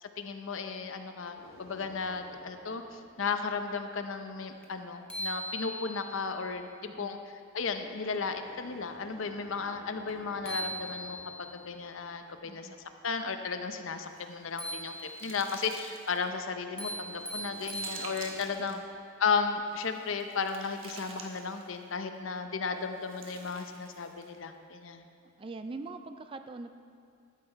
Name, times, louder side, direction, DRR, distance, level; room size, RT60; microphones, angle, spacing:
voice 1, 0.0-7.2 7.5-12.7 13.0-14.9 15.2-18.8 19.2-25.0, left 5 dB, 70° left, 7 dB, 0.7 m, -34 dB
sound 1, 1.3-4.4 7.8-13.2 16.7-18.5, left 1 dB, 85° left, 1.1 m, -54 dB
sound 2, 4.6-4.7 5.1-6.2 10.1-10.2 10.5-11.5 14.6-15.5 16.8-18.5, right 1 dB, 5° left, 0.9 m, -39 dB
voice 2, 6.9-7.2 12.5-12.8 18.5-18.9 25.4-26.7, right 3 dB, 25° right, 9 dB, 0.3 m, -43 dB
sound 3, 14.0-16.3 16.8-18.8 19.7-21.8 22.8-24.4, right 4 dB, 70° right, 1.2 m, -49 dB
12.5 x 7.6 x 4.5 m, 2.3 s
head